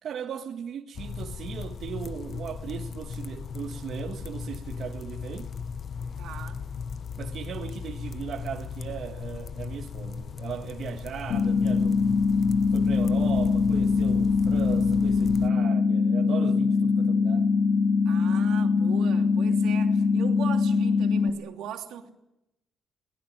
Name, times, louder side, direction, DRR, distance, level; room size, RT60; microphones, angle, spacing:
voice 1, 0.0-5.5 7.2-12.0 12.7-17.5, right 8 dB, 65° right, 1.6 m, -37 dB
sound 1, 0.9-15.5, left 6 dB, 50° left, 0.9 m, -36 dB
voice 2, 6.2-6.6 18.0-22.1, right 9 dB, 85° right, 3.1 m, -39 dB
sound 2, 11.3-21.3, left 4 dB, 70° left, 1.9 m, -23 dB
23.0 x 19.0 x 9.4 m
cardioid pair, 90°, 0 cm